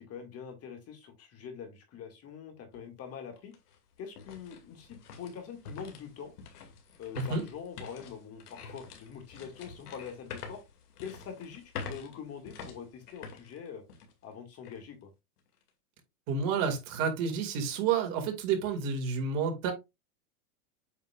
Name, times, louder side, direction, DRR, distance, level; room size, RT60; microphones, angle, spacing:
voice 1, 0.1-3.5 4.0-6.3 7.0-10.6 11.0-13.8 14.2-15.1, left 7 dB, 30° left, 2.1 m, -44 dB
sound 1, 2.7-2.8 3.3-14.2 14.6-14.8 15.4-15.7, left 5 dB, 85° left, 2.3 m, -47 dB
voice 2, 16.3-19.7, right 6 dB, 45° right, 2.3 m, -30 dB
8.2 x 5.3 x 2.4 m
supercardioid pair, 130°, 45 cm